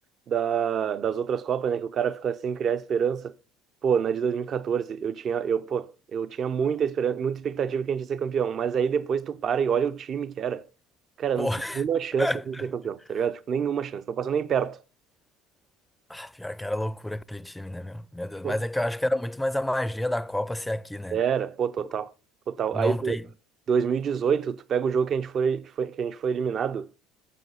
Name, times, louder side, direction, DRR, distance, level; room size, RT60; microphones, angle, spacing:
voice 1, 0.3-3.3 3.8-10.6 11.2-11.5 11.8-14.8 18.4-18.6 21.1-22.1 22.5-23.2 23.7-26.9, right 7 dB, 45° right, 0.5 m, -27 dB
voice 2, 11.4-11.8 12.2-12.7 16.1-21.2 22.7-23.3, left 1 dB, 5° left, 0.5 m, -29 dB
8.2 x 7.3 x 5.6 m
hypercardioid pair, 75°, 0 cm